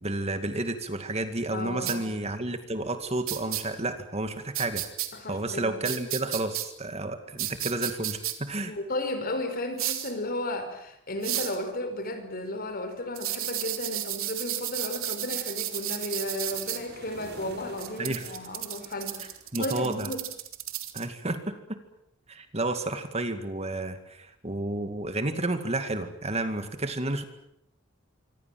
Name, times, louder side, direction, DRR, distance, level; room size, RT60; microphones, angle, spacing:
voice 1, 0.0-4.8 5.3-8.7 18.0-18.3 19.5-20.1 20.9-21.8 22.3-27.2, right 2 dB, 30° right, 2.2 m, -31 dB
voice 2, 1.5-2.1 5.1-5.8 8.7-19.3 19.6-20.2, left 1 dB, 45° left, 5.0 m, -34 dB
sound 1, 1.9-2.0 3.3-3.6 4.5-5.1 5.8-6.7 7.4-8.3 9.8-10.1 11.2-11.6 13.2-16.8 17.8-21.1, right 14 dB, 90° right, 3.1 m, -32 dB
sound 2, 15.6-19.8, right 2 dB, 55° right, 6.5 m, -48 dB
25.5 x 25.5 x 7.7 m
head